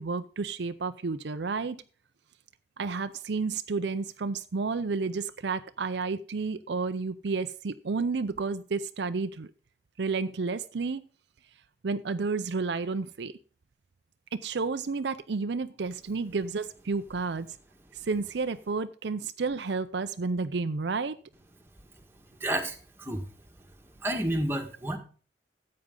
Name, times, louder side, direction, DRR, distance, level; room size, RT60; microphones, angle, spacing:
voice 1, 0.0-1.8 2.8-9.5 10.0-11.0 11.8-13.3 14.3-17.5 18.0-21.2, right 4 dB, 65° right, 11 dB, 0.5 m, -31 dB
voice 2, 22.4-22.7 23.0-23.2 24.0-25.0, right 1 dB, 15° right, 3 dB, 1.6 m, -29 dB
13.5 x 8.6 x 3.8 m, 0.40 s
head